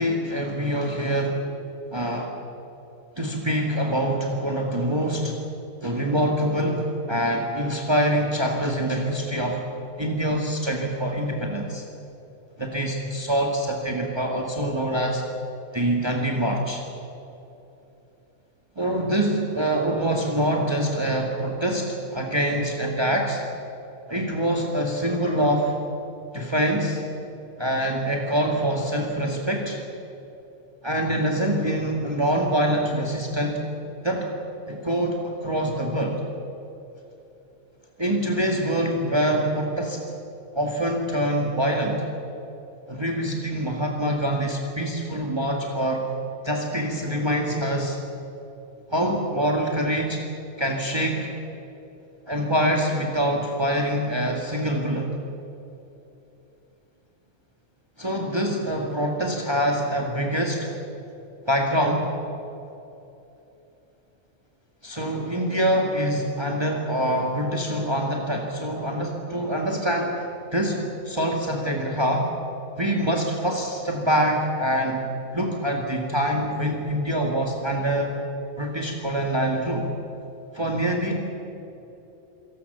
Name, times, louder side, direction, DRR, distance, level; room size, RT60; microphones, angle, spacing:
voice 1, 0.0-1.4 1.9-2.3 3.2-5.4 5.8-9.6 10.0-11.8 12.6-15.2 15.7-16.8 18.8-23.4 24.1-25.7 26.3-27.0 27.6-29.8 30.8-33.6 34.0-34.3 34.7-36.2 38.0-40.0 40.5-42.0 42.9-46.0 46.4-48.0 48.9-50.2 50.6-51.3 52.3-55.1 58.0-60.7 61.5-62.1 64.8-70.3 70.5-72.3 72.8-75.0 75.3-78.1 78.6-79.9 80.5-81.2, right 1 dB, 20° right, 1 dB, 2.1 m, -25 dB
28.0 x 18.0 x 6.9 m, 2.9 s
omnidirectional pair, 1.3 m